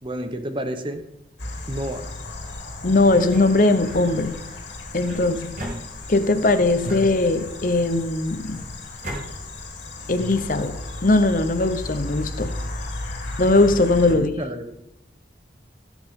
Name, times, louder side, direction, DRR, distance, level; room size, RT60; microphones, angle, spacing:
voice 1, 0.0-1.0 1.7-2.1 14.1-14.8, right 1 dB, 30° right, 8 dB, 1.0 m, -30 dB
sound 1, 1.4-14.2, left 2 dB, 90° left, 2.3 m, -35 dB
voice 2, 2.8-4.3 4.9-5.6 6.1-8.6 10.1-12.5 13.4-14.3, left 2 dB, 50° left, 9 dB, 0.9 m, -20 dB
sound 2, 3.1-4.0 5.0-6.3 6.8-7.7 8.4-9.2, equal, 45° right, 3.6 m, -36 dB
16.5 x 8.1 x 3.7 m, 0.82 s
head